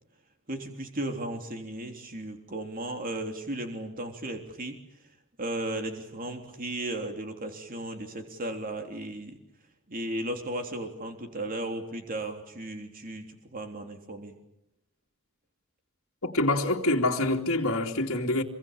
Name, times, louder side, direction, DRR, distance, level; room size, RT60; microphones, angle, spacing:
voice 1, 0.5-4.8 5.4-9.4 9.9-14.3, right 1 dB, 40° right, 3.5 m, -35 dB
voice 2, 16.2-18.4, left 2 dB, 65° left, 2.7 m, -26 dB
27.0 x 23.0 x 8.8 m
head